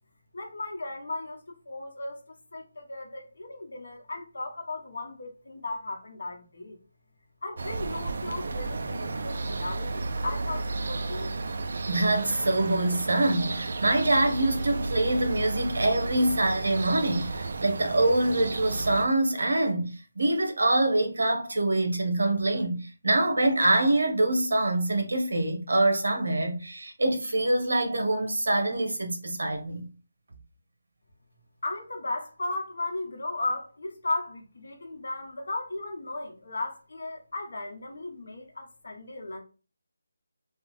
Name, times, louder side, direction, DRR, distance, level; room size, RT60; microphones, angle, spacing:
voice 1, 0.3-2.2 2.5-6.8 7.4-11.3 31.6-39.4, left 2 dB, 65° left, 0.9 m, -36 dB
sound 1, 7.6-19.1, right 3 dB, 55° right, 0.3 m, -33 dB
voice 2, 11.9-19.9 20.2-29.9, right 2 dB, 80° right, 1.0 m, -25 dB
3.4 x 2.0 x 3.0 m
figure-of-eight pair, 170°, 0 cm